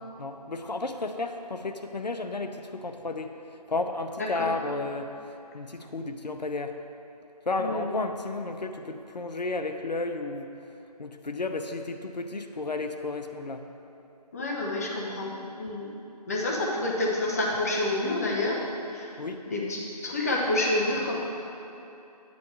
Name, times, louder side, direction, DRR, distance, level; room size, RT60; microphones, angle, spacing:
voice 1, 0.0-5.1 5.5-6.8 7.5-10.5 11.0-13.6 19.2-19.4, left 3 dB, 85° left, 6 dB, 0.7 m, -33 dB
voice 2, 7.6-7.9 14.3-15.9 16.3-18.6 18.9-19.1 19.5-21.2, left 2 dB, 25° left, -2 dB, 0.8 m, -28 dB
9.5 x 9.4 x 3.3 m, 2.9 s
figure-of-eight pair, 160°, 21 cm